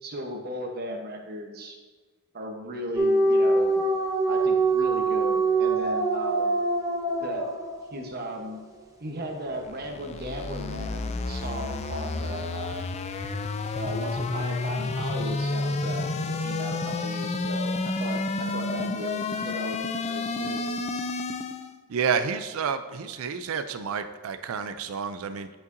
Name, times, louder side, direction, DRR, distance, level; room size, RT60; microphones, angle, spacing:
voice 1, 0.0-1.8 2.3-3.8 4.3-6.6 7.2-7.6 7.9-8.6 9.0-12.8 13.8-16.1 16.3-20.6, equal, 45° right, 2 dB, 1.0 m, -36 dB
sound 1, 3.0-8.2, right 2 dB, 15° right, 0.8 m, -24 dB
sound 2, 9.5-21.7, left 3 dB, 30° left, 0.3 m, -30 dB
voice 2, 21.9-25.5, right 6 dB, 65° right, 9 dB, 0.4 m, -29 dB
10.5 x 5.5 x 2.6 m, 1.3 s
head